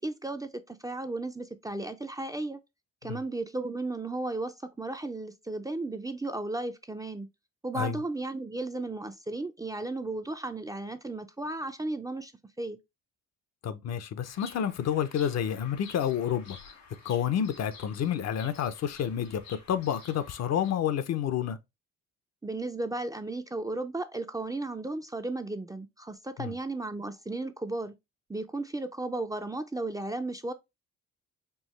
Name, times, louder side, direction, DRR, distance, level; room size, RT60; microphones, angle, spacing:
voice 1, 0.0-2.6 3.0-7.3 7.6-12.3 12.6-12.8 22.4-27.9 28.3-30.5, right 2 dB, 10° right, 0.4 m, -34 dB
voice 2, 13.6-16.7 17.0-21.6 26.4-26.5, left 9 dB, 60° left, 0.6 m, -29 dB
Bird vocalization bird call bird song, 14.2-20.7, left 4 dB, 85° left, 2.3 m, -51 dB
4.6 x 2.7 x 3.1 m
cardioid pair, 90°, 30 cm